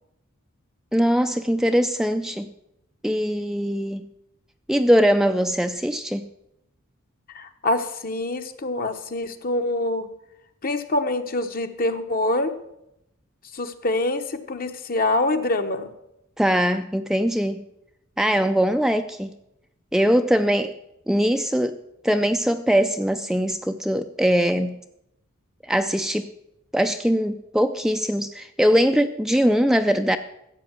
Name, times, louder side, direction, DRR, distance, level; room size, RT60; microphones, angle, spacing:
voice 1, 0.9-2.5 3.0-4.0 4.7-6.3 16.4-17.6 18.2-19.3 19.9-20.7 21.1-21.8 22.0-24.8 25.6-26.3 26.7-30.2, equal, ahead, 7 dB, 0.4 m, -21 dB
voice 2, 7.3-10.1 10.6-12.6 13.5-15.9, left 2 dB, 45° left, 8 dB, 1.0 m, -25 dB
13.5 x 8.3 x 7.3 m, 0.82 s
head